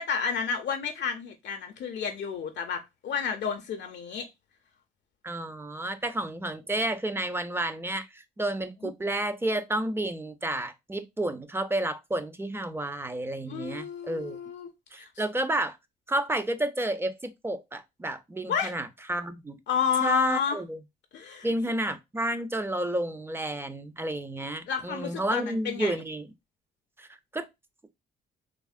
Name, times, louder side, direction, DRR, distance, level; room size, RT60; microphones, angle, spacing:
voice 1, 0.0-4.3 8.8-8.9 13.5-15.1 18.5-18.8 19.7-20.6 21.1-21.5 24.7-26.0, left 7 dB, 65° left, 0.5 m, -31 dB
voice 2, 5.2-14.4 14.9-15.8 16.1-19.5 20.0-20.8 21.4-26.3 27.0-27.1 27.3-27.5, right 1 dB, 10° right, 0.4 m, -31 dB
3.5 x 2.0 x 2.4 m
cardioid pair, 90°, 20 cm